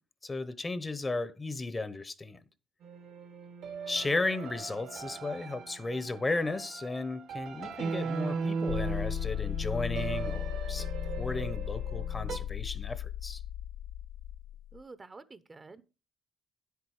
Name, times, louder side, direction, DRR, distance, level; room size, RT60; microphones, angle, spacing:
voice 1, 0.2-2.4 3.9-10.9 11.1-13.4, left 3 dB, 25° left, 0.9 m, -34 dB
sound 1, 2.8-12.4, right 5 dB, 80° right, 1.7 m, -38 dB
sound 2, 8.7-14.8, left 12 dB, 75° left, 0.4 m, -36 dB
voice 2, 14.7-15.8, right 3 dB, 30° right, 0.8 m, -49 dB
9.6 x 8.4 x 4.8 m
cardioid pair, 90°, 0 cm